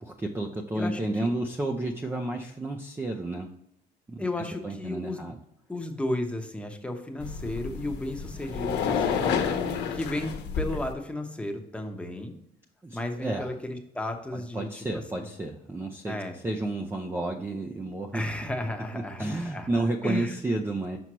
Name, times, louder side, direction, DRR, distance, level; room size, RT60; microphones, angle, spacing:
voice 1, 0.0-3.5 4.1-5.4 12.8-13.5 14.3-18.2 18.9-21.0, right 2 dB, 15° right, 2 dB, 0.5 m, -31 dB
voice 2, 0.7-1.3 4.2-5.2 5.7-9.5 9.9-12.3 12.9-15.3 16.1-16.4 18.1-20.4, left 1 dB, 5° left, 3 dB, 0.9 m, -34 dB
sound 1, 7.2-10.9, left 6 dB, 85° left, 1.0 m, -30 dB
6.1 x 5.6 x 3.0 m, 0.78 s
cardioid pair, 110°, 17 cm